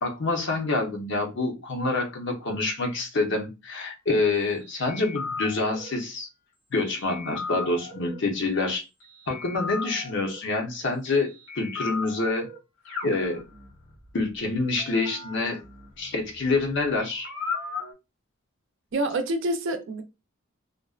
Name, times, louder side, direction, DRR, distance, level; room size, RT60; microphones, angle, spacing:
voice 1, 0.0-6.3 6.7-8.9 9.3-12.5 13.0-13.4 14.1-15.6 16.0-17.3, left 3 dB, 60° left, 0.7 m, -27 dB
sound 1, 4.9-6.0 7.1-8.2 9.3-10.4 11.5-12.6 12.8-13.9 14.8-16.6 17.0-17.9, left 4 dB, 80° left, 1.1 m, -36 dB
voice 2, 18.9-20.0, right 1 dB, 65° right, 0.5 m, -27 dB
2.5 x 2.1 x 2.3 m
head